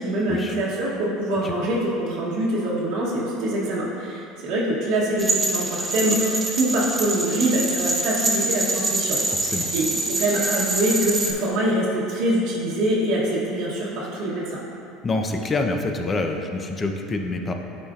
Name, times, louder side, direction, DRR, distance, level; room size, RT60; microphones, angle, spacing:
voice 1, 0.0-9.2 9.4-14.6, right 1 dB, 65° right, -6 dB, 1.0 m, -24 dB
sound 1, 5.2-11.3, right 2 dB, 20° right, 0.8 m, -25 dB
voice 2, 9.3-9.7 15.0-17.5, left 2 dB, 25° left, 4 dB, 0.6 m, -26 dB
9.7 x 4.2 x 2.5 m, 2.8 s
supercardioid pair, 95°, 0 cm